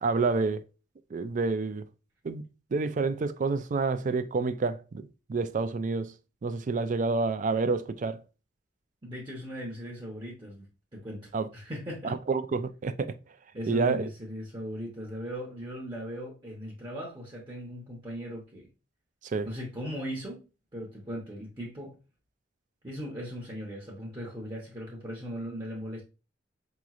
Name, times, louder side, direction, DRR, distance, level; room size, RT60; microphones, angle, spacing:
voice 1, 0.0-0.6 1.1-1.8 2.2-6.1 6.4-8.2 11.3-11.5 12.0-13.1 13.7-14.1 19.2-19.5, right 4 dB, 45° right, 0.4 m, -28 dB
voice 2, 9.0-10.7 10.9-12.1 13.5-18.7 19.4-20.4 20.7-22.0 22.8-26.0, equal, 25° right, 0.9 m, -38 dB
5.0 x 3.0 x 2.4 m
head